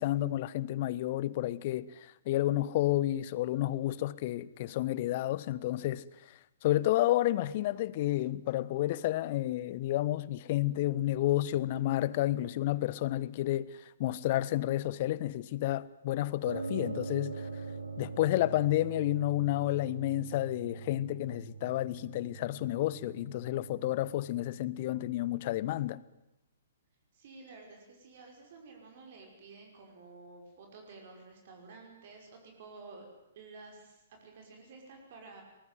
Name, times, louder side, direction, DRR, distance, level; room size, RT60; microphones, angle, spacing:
voice 1, 0.0-6.0 6.6-13.7 14.0-17.5 18.0-26.0, left 15 dB, 40° left, 1.0 m, -30 dB
sound 1, 16.5-25.6, right 4 dB, 75° right, 3.3 m, -43 dB
voice 2, 27.1-33.1 33.3-35.4, right 3 dB, 45° right, 5.8 m, -52 dB
23.5 x 20.5 x 9.4 m
figure-of-eight pair, 120°, 0 cm